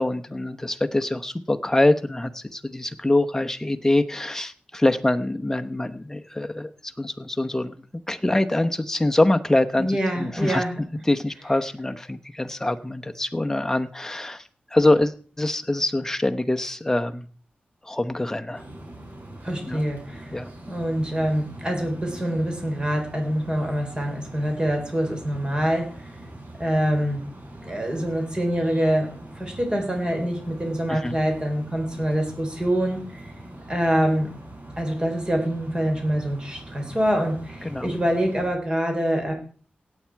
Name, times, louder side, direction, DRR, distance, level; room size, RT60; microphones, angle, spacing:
voice 1, 0.0-7.7 8.1-10.6 11.1-17.3 17.8-18.6 19.6-19.8 20.3-20.5 30.9-31.2 37.6-37.9, left 1 dB, 15° left, 8 dB, 0.9 m, -24 dB
voice 2, 9.8-10.8 19.4-20.3 20.7-25.9 26.6-27.2 27.6-29.1 29.4-33.0 33.7-34.3 34.8-39.3, equal, 25° right, 3 dB, 3.6 m, -25 dB
sound 1, 18.5-38.5, right 1 dB, 60° right, 6.6 m, -42 dB
16.5 x 8.5 x 4.6 m, 0.43 s
wide cardioid pair, 110°, 3 cm